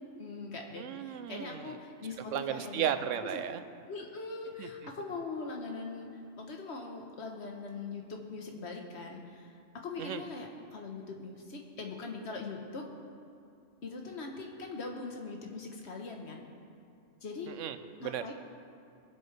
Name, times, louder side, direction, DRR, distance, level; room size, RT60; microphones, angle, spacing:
voice 1, 0.2-2.9 3.9-6.1 6.4-9.5 9.8-12.9 13.8-16.4 17.2-17.5 18.0-18.3, left 3 dB, 60° left, 1 dB, 1.4 m, -41 dB
voice 2, 0.7-1.8 2.3-3.6 4.6-4.7 10.0-10.2 17.5-18.3, right 9 dB, 85° right, 10 dB, 1.0 m, -35 dB
21.0 x 8.1 x 3.3 m, 2.5 s
omnidirectional pair, 1.3 m